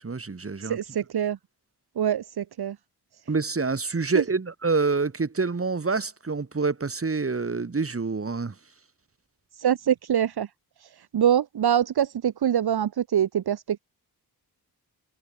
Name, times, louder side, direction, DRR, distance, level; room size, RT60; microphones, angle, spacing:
voice 1, 0.0-0.8 3.3-8.5, right 4 dB, 35° right, 5.6 m, -27 dB
voice 2, 0.6-1.4 2.0-2.8 4.1-4.2 9.5-10.5 10.8-13.8, right 9 dB, 65° right, 2.5 m, -24 dB
cardioid pair, 65°, 41 cm